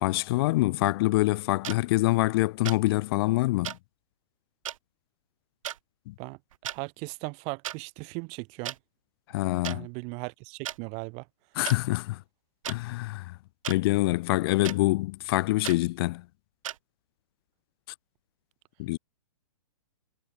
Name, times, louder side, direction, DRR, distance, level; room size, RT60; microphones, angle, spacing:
voice 1, 0.0-3.8 6.1-6.2 9.3-9.9 11.6-12.2 12.7-13.4 13.7-16.2 18.8-19.0, left 19 dB, 45° left, 0.6 m, -25 dB
sound 1, 1.6-1.8 2.6-2.8 3.6-3.8 4.6-4.8 5.6-5.8 6.5-6.8 7.6-7.8 8.6-8.8 9.6-9.8 10.6-10.8 11.6-11.8 12.6-12.8 13.6-13.8 14.6-14.8 15.6-15.8 16.6-16.8, right 11 dB, 65° right, 1.6 m, -35 dB
voice 2, 6.2-8.8 9.7-11.3, right 33 dB, 35° right, 2.3 m, -38 dB
hypercardioid pair, 135°, 18 cm